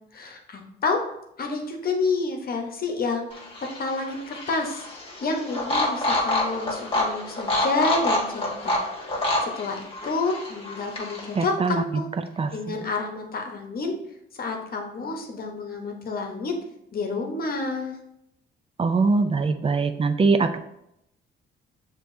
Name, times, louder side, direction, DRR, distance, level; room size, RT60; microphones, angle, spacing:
voice 1, 0.1-1.0 1.4-3.3 3.8-4.8 5.2-8.7 9.2-12.0 12.5-14.0 14.4-16.6 16.9-18.0, left 3 dB, 50° left, 3 dB, 1.0 m, -29 dB
sound 1, 3.3-11.5, left 1 dB, 25° left, 1.5 m, -28 dB
voice 2, 11.4-11.8 12.4-12.8 18.8-20.6, right 4 dB, 30° right, 9 dB, 0.4 m, -22 dB
6.6 x 3.0 x 2.7 m, 0.79 s
cardioid pair, 90°, 20 cm